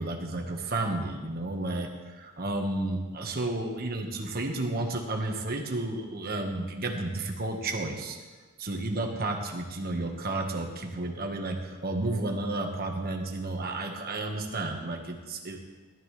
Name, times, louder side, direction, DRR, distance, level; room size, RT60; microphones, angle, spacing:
voice 1, 0.0-8.2 8.6-15.6, right 2 dB, 45° right, 2 dB, 1.4 m, -32 dB
17.5 x 12.5 x 3.3 m, 1.3 s
head